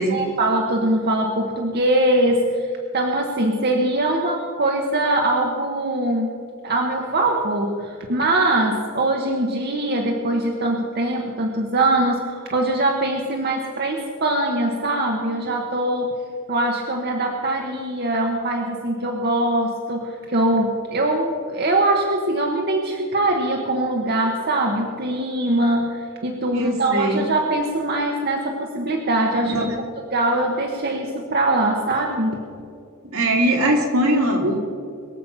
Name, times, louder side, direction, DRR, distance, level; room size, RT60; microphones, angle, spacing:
voice 1, 0.1-6.4 6.6-16.2 16.5-29.6 30.1-32.4, right 1 dB, 50° right, 1 dB, 1.1 m, -22 dB
voice 2, 26.5-27.2 29.4-29.7 33.1-34.6, right 1 dB, 75° right, 0 dB, 2.6 m, -21 dB
22.0 x 7.4 x 5.7 m, 2.4 s
head